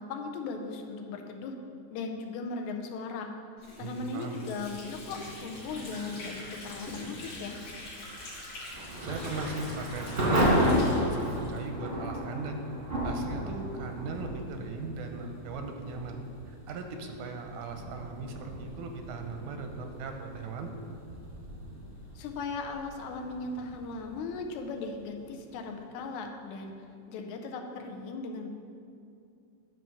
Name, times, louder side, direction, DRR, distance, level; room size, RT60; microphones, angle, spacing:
voice 1, 0.0-1.6 1.9-3.3 3.8-7.6 22.2-26.7 27.1-28.5, left 4 dB, 85° left, 4 dB, 2.0 m, -38 dB
Water / Sink (filling or washing), 3.6-12.1, left 1 dB, 60° left, 2.5 m, -44 dB
voice 2, 3.8-4.4 8.6-12.6 13.0-16.2 16.5-20.7, right 3 dB, 90° right, 5 dB, 2.0 m, -39 dB
Thunder / Rain, 8.7-25.4, equal, 40° right, 0.8 m, -33 dB
9.0 x 3.0 x 6.2 m, 2.5 s
omnidirectional pair, 3.3 m